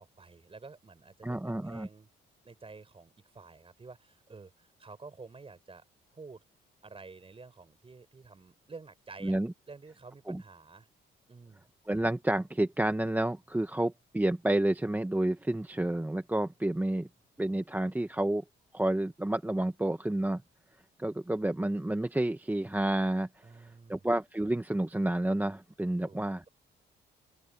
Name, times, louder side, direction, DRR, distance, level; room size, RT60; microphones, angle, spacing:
voice 1, 0.0-2.1 2.4-5.8 6.1-6.4 6.8-9.4 9.7-10.9 11.3-11.6 23.4-24.1 26.0-26.2, right 4 dB, 30° right, 4.6 m, -50 dB
voice 2, 1.2-1.9 9.2-9.5 10.3-10.4 11.9-17.1 17.4-18.4 18.7-20.4 21.0-23.3 23.5-26.4, right 1 dB, 10° right, 1.4 m, -30 dB
open air
cardioid pair, 90°, 20 cm